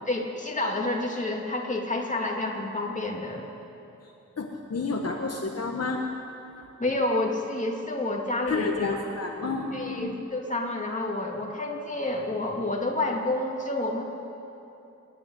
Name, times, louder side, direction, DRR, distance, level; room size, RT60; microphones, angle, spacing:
voice 1, 0.1-3.5 6.8-8.7 9.7-14.0, left 2 dB, 25° left, 0 dB, 2.6 m, -29 dB
voice 2, 4.4-6.0 8.5-10.1, left 3 dB, 55° left, 1 dB, 1.4 m, -30 dB
26.5 x 11.0 x 10.0 m, 2.9 s
wide cardioid pair, 125°, 30 cm